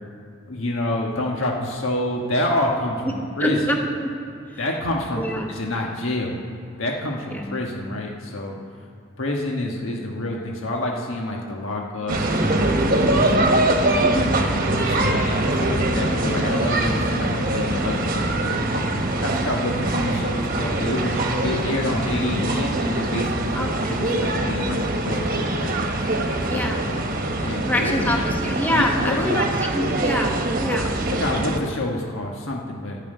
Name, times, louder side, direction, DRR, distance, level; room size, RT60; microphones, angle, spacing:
voice 1, 0.5-3.6 4.6-6.4 6.8-8.6 9.2-13.4 14.1-25.8 26.5-27.0 27.4-28.2 28.7-29.5 31.1-33.0, left 1 dB, 80° left, 0 dB, 1.3 m, -28 dB
voice 2, 3.4-4.1 5.2-5.5 7.3-7.6 14.0-14.3 23.5-24.0 26.5-26.8 27.6-29.5 29.7-30.3 30.6-30.9, equal, 10° left, 1 dB, 1.2 m, -25 dB
sound 1, 12.1-31.6, right 1 dB, 45° right, 1.2 m, -23 dB
11.0 x 7.4 x 9.0 m, 2.6 s
head